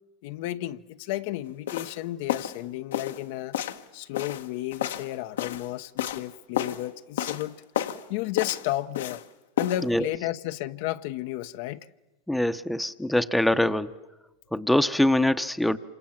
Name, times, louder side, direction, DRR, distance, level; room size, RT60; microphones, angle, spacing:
voice 1, 0.2-3.6 3.9-7.6 8.1-9.2 9.6-11.9, left 15 dB, 65° left, 0.8 m, -32 dB
sound 1, 1.7-1.9 2.3-2.6 2.9-3.2 3.5-3.8 4.1-5.7 6.0-6.3 6.5-6.8 7.2-7.5 7.7-8.0 8.4-9.2 9.6-9.8, left 10 dB, 80° left, 1.3 m, -31 dB
voice 2, 9.8-10.1 12.3-13.9 14.5-15.8, left 1 dB, 5° left, 0.9 m, -23 dB
27.5 x 26.0 x 7.4 m
hypercardioid pair, 105°, 0 cm